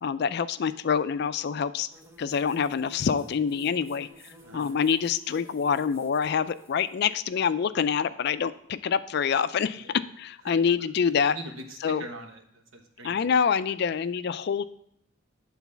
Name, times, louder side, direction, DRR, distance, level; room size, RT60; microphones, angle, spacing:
voice 1, 0.0-1.9 2.2-11.4 11.8-12.0 13.0-14.6, left 6 dB, 55° left, 14 dB, 0.4 m, -26 dB
sound 1, 1.9-7.1, right 1 dB, 10° right, 0.7 m, -51 dB
voice 2, 11.3-13.3, right 2 dB, 90° right, 4 dB, 1.2 m, -42 dB
8.3 x 4.0 x 6.9 m, 0.70 s
head